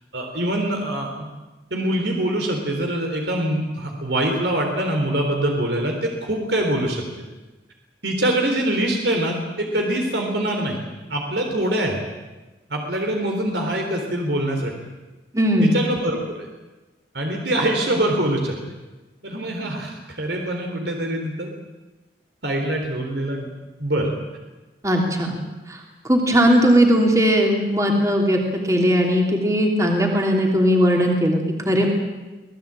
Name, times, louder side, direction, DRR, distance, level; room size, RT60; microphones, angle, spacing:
voice 1, 0.1-1.3 1.7-7.0 8.0-10.8 11.1-12.0 12.7-14.7 15.6-16.5 17.1-18.6 19.2-21.5 22.4-23.5 23.8-24.1, right 1 dB, 70° right, 2 dB, 3.8 m, -24 dB
voice 2, 15.3-15.8 24.8-25.4 25.7-28.4 28.6-31.9, equal, 15° right, 1 dB, 3.0 m, -18 dB
26.0 x 18.0 x 8.9 m, 1.2 s
head